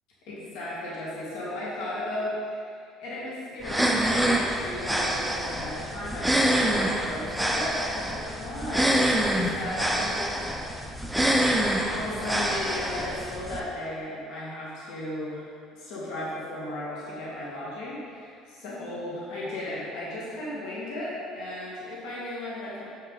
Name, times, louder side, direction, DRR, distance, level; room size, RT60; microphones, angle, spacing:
voice 1, 0.3-11.0 11.5-22.9, left 1 dB, 70° left, -7 dB, 1.9 m, -35 dB
sound 1, 3.6-13.6, right 1 dB, ahead, 0.4 m, -26 dB
6.9 x 6.6 x 3.9 m, 2.2 s
cardioid pair, 175°, 0 cm